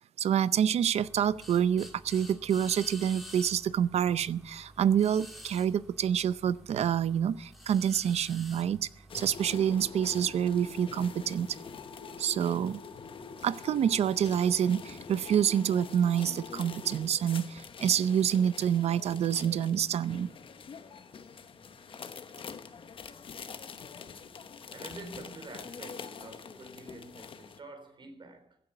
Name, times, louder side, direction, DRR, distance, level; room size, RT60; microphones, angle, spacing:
voice 1, 0.2-8.9 9.1-11.6 12.2-12.8 13.4-20.3, right 9 dB, 85° right, 0.6 m, -27 dB
sound 1, 0.9-15.4, equal, ahead, 2.8 m, -52 dB
sound 2, 9.1-27.6, left 6 dB, 55° left, 1.0 m, -45 dB
voice 2, 24.7-28.6, right 2 dB, 50° right, 3.5 m, -47 dB
16.0 x 8.9 x 8.3 m
wide cardioid pair, 140°, 11 cm